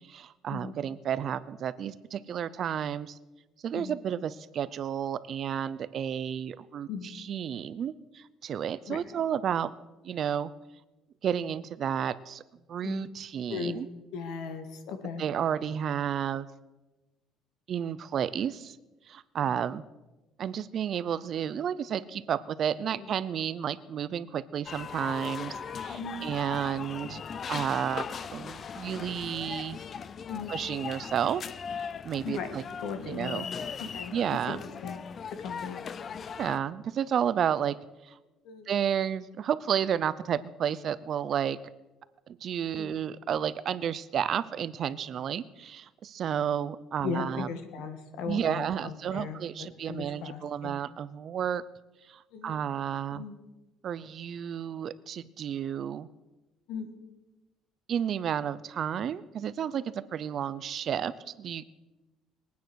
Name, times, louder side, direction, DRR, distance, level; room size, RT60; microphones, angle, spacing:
voice 1, 0.1-3.2 3.6-6.9 7.1-9.7 10.0-10.5 11.2-12.4 12.7-13.9 15.2-16.5 17.7-18.8 19.1-19.8 20.4-27.2 27.5-29.8 30.5-31.4 31.7-32.6 33.1-33.5 34.1-34.6 36.4-37.8 38.0-38.2 38.7-41.6 42.4-47.5 48.3-51.6 52.1-53.2 53.8-56.1 57.9-61.7, right 9 dB, 40° right, 17 dB, 0.5 m, -31 dB
voice 2, 14.1-15.2 19.4-19.6 22.9-23.1 25.9-26.3 30.3-30.6 32.2-33.4 33.8-34.1 34.5-35.0 35.4-36.2 38.4-38.7 42.7-42.9 47.0-50.8 52.3-52.6 53.1-53.4 56.7-56.9, left 5 dB, 70° left, 8 dB, 2.1 m, -38 dB
sound 1, 24.6-36.6, left 6 dB, 30° left, 0.5 m, -39 dB
22.0 x 9.4 x 6.3 m, 1.1 s
cardioid pair, 155°, 0 cm